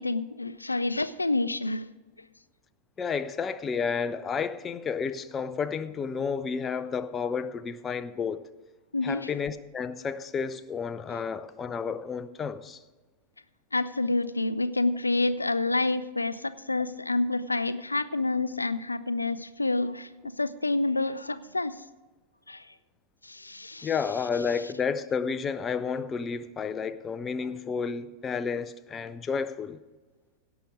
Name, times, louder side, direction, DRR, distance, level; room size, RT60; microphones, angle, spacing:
voice 1, 0.0-1.9 8.9-9.3 13.7-21.8 22.5-22.7 23.2-23.9, left 2 dB, 80° left, 0.4 m, -28 dB
voice 2, 3.0-8.5 9.0-12.8 23.8-29.8, left 6 dB, 20° left, 0.5 m, -31 dB
17.0 x 6.0 x 5.0 m
figure-of-eight pair, 90°, 0 cm